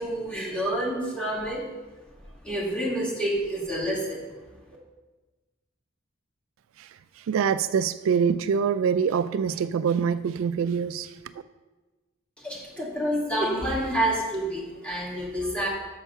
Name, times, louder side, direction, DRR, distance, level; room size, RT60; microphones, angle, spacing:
voice 1, 0.0-1.6 2.4-4.3 12.4-15.7, right 1 dB, 5° left, -4 dB, 2.0 m, -28 dB
voice 2, 6.8-11.2, right 6 dB, 75° right, 13 dB, 0.3 m, -25 dB
7.2 x 5.7 x 5.6 m, 1.2 s
head